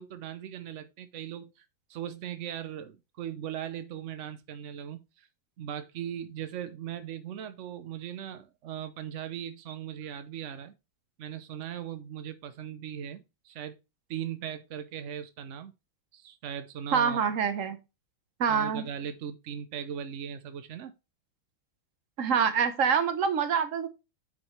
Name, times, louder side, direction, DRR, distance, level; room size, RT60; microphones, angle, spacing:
voice 1, 0.0-1.6 1.9-5.3 5.6-10.7 11.2-13.8 14.1-15.7 16.1-17.2 18.5-20.9, right 9 dB, 80° right, 0.6 m, -39 dB
voice 2, 16.9-17.8 18.4-18.8 22.2-23.9, right 6 dB, 50° right, 1.0 m, -26 dB
9.6 x 5.1 x 3.1 m
omnidirectional pair, 2.2 m